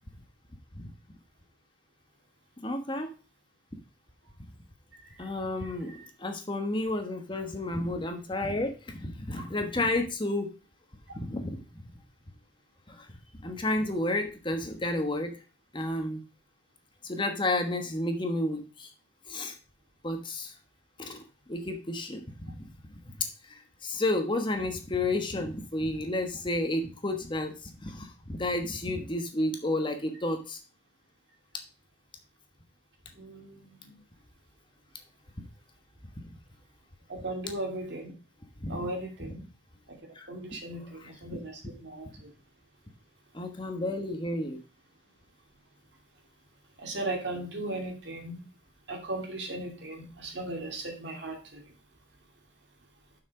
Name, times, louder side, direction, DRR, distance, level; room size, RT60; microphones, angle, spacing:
voice 1, 2.6-3.1 5.2-10.5 11.1-11.6 12.9-13.1 13.4-15.3 15.7-16.2 17.0-18.9 19.3-19.5 20.0-20.5 21.0-30.6 35.4-35.5 36.2-36.3 38.6-38.8 40.1-40.3 41.0-41.1 43.3-44.6, left 2 dB, 25° left, 5 dB, 1.2 m, -31 dB
voice 2, 4.9-5.3 33.1-34.0 37.1-38.1 38.7-39.4 39.9-42.3 46.8-48.5 48.9-51.7, right 2 dB, 70° right, 2 dB, 2.5 m, -37 dB
7.1 x 6.0 x 4.8 m, 0.33 s
head